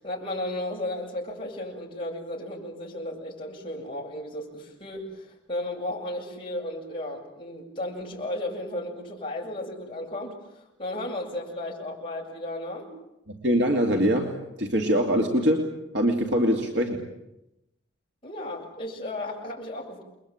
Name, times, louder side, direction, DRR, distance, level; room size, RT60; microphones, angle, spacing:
voice 1, 0.0-12.9 18.2-20.0, left 1 dB, 25° left, -2 dB, 7.8 m, -34 dB
voice 2, 13.3-17.1, equal, 65° right, 2 dB, 2.9 m, -24 dB
30.0 x 22.5 x 8.9 m, 0.90 s
head